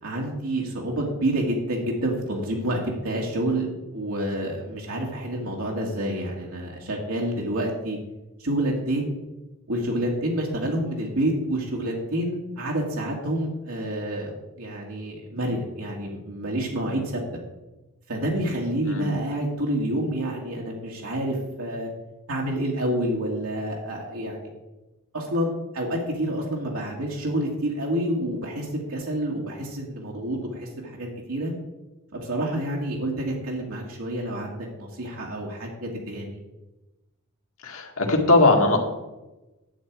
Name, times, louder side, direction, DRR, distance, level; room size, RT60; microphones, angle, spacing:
voice 1, 0.0-3.7 3.9-8.0 8.4-9.2 9.7-17.2 18.1-21.9 22.3-24.5 25.1-31.5 32.1-36.4, right 1 dB, 80° right, -2 dB, 1.9 m, -28 dB
voice 2, 37.6-38.8, left 2 dB, 70° left, 2 dB, 2.0 m, -19 dB
11.0 x 8.1 x 4.7 m, 1.1 s
head